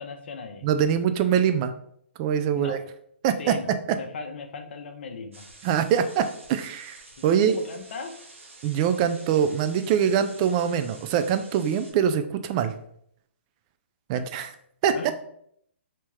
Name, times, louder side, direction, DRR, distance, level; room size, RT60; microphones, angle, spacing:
voice 1, 0.0-0.6 2.5-2.8 3.4-5.4 7.2-8.2 14.9-15.1, left 5 dB, 60° left, 5 dB, 0.6 m, -38 dB
voice 2, 0.6-1.7 2.2-2.8 3.2-3.6 3.9-4.0 5.6-7.0 7.2-7.6 8.6-12.8 14.1-14.5 14.8-15.1, right 8 dB, 30° right, 10 dB, 0.3 m, -23 dB
sound 1, 5.3-11.9, right 2 dB, 85° right, 1.1 m, -49 dB
3.3 x 2.9 x 3.1 m, 0.69 s
figure-of-eight pair, 130°, 7 cm